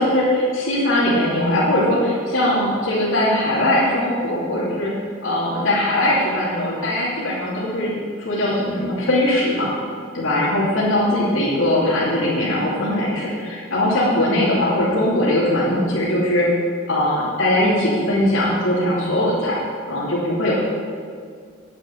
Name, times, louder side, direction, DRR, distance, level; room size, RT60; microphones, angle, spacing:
voice 1, 0.0-4.9 5.2-7.9 8.2-9.7 10.1-16.5 16.9-19.6 19.9-20.5, left 1 dB, 90° left, -7 dB, 2.8 m, -20 dB
9.3 x 7.9 x 7.9 m, 2.1 s
head